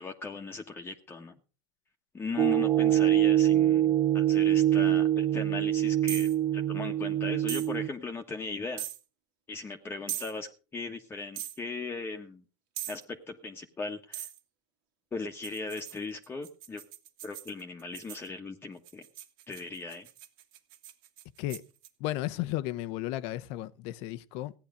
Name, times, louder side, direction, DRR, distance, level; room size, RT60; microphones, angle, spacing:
voice 1, 0.0-1.3 2.1-8.9 9.5-12.4 12.9-14.3 15.1-16.8 17.2-19.0 19.5-20.1, left 3 dB, 20° left, 1.3 m, -38 dB
sound 1, 2.4-7.9, right 12 dB, 30° right, 0.7 m, -24 dB
sound 2, 6.1-6.4 7.5-7.7 8.8-9.0 10.1-10.3 11.4-11.6 12.8-13.0 14.1-14.4 15.4-18.3 18.8-21.9, right 12 dB, 70° right, 2.2 m, -40 dB
voice 2, 22.0-24.5, left 15 dB, 65° left, 0.9 m, -34 dB
16.5 x 10.0 x 5.1 m
supercardioid pair, 110°, 12 cm